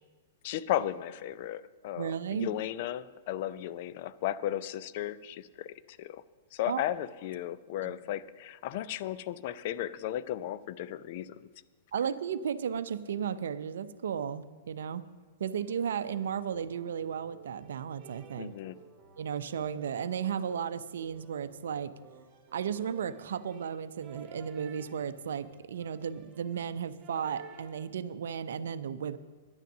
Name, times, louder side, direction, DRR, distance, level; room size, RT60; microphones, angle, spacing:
voice 1, 0.4-6.2 6.5-11.3 18.4-18.8, left 12 dB, 55° left, 16 dB, 0.4 m, -35 dB
voice 2, 2.0-2.5 6.7-6.8 7.8-7.9 11.9-15.0 15.4-18.5 19.2-21.9 22.5-29.2, right 8 dB, 70° right, 14 dB, 0.5 m, -34 dB
sound 1, 15.4-27.9, right 6 dB, 25° right, 1.9 m, -55 dB
10.5 x 9.1 x 6.5 m, 1.4 s
hypercardioid pair, 110°, 0 cm